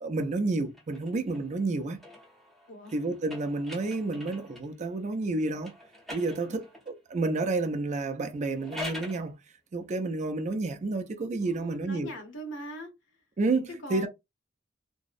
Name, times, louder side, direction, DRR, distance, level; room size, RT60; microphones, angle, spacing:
voice 1, 0.0-2.0 2.9-5.7 6.1-9.3 9.7-12.1 13.4-14.1, right 3 dB, 40° right, 0.4 m, -30 dB
sound 1, 0.7-4.8 5.6-7.0 8.4-9.2, left 1 dB, ahead, 0.8 m, -44 dB
voice 2, 11.4-12.9 13.7-14.1, equal, 75° left, 0.9 m, -41 dB
2.6 x 2.0 x 2.4 m
head